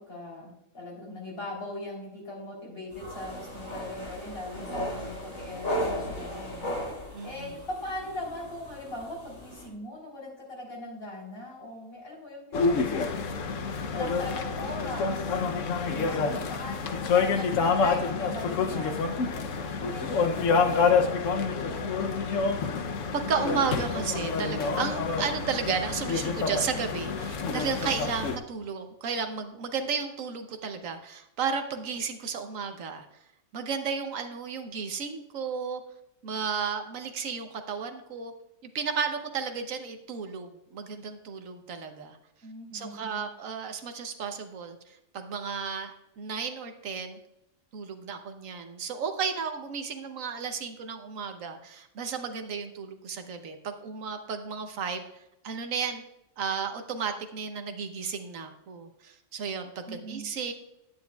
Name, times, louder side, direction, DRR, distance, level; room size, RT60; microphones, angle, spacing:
voice 1, 0.0-6.7 7.2-13.1 13.9-15.4 16.1-22.3 42.4-43.2 59.9-60.3, left 1 dB, 45° left, -3 dB, 3.6 m, -40 dB
sound 1, 2.9-9.7, equal, 90° left, 4.3 m, -36 dB
voice 2, 7.1-7.6 15.9-16.5 23.1-33.1 33.5-35.8 36.2-38.3 38.7-42.2 42.7-44.8 45.1-47.2 47.7-55.0 55.4-56.0 56.4-60.5, right 6 dB, 80° right, 6 dB, 1.3 m, -33 dB
sound 2, 12.5-28.4, left 5 dB, 70° left, 1.1 m, -28 dB
11.5 x 9.6 x 2.3 m, 0.86 s
omnidirectional pair, 1.4 m